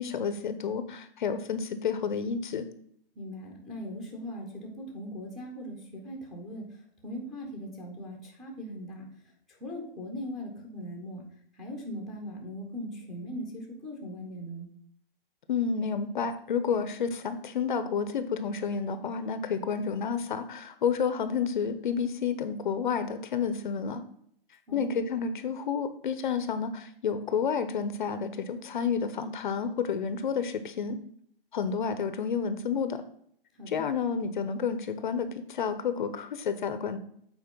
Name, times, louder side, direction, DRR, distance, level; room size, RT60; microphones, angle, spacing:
voice 1, 0.0-2.7 15.5-24.0 24.7-31.0 31.5-33.0 33.7-37.0, left 6 dB, 55° left, 11 dB, 0.7 m, -30 dB
voice 2, 3.1-9.1 9.5-11.2 11.5-14.7 24.7-25.0 33.5-33.8, equal, ahead, -1 dB, 0.9 m, -40 dB
8.1 x 4.3 x 5.3 m, 0.68 s
hypercardioid pair, 170°, 29 cm